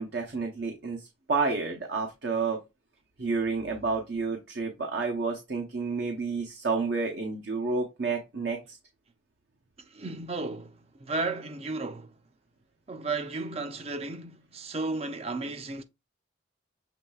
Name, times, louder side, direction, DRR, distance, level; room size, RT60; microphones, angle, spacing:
voice 1, 0.0-2.6 3.2-8.8, right 4 dB, 65° right, 0.8 m, -30 dB
voice 2, 9.9-12.1 12.9-15.8, right 3 dB, 30° right, 0.5 m, -34 dB
7.2 x 3.2 x 2.3 m
head